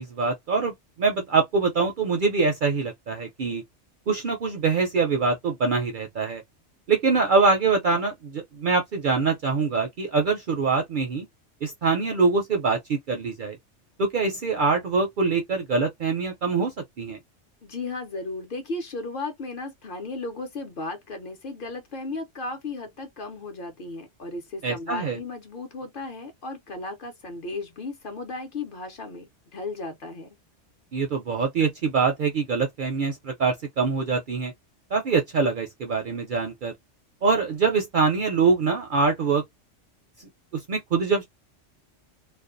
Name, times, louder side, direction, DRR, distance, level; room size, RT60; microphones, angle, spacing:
voice 1, 0.0-3.6 4.1-6.4 6.9-11.3 11.6-13.6 14.0-17.2 24.6-25.2 30.9-34.5 34.9-36.7 37.2-39.4 40.2-41.2, right 4 dB, 60° right, 0.5 m, -24 dB
voice 2, 17.6-30.4, left 3 dB, 55° left, 0.7 m, -35 dB
2.4 x 2.2 x 2.4 m
omnidirectional pair, 1.3 m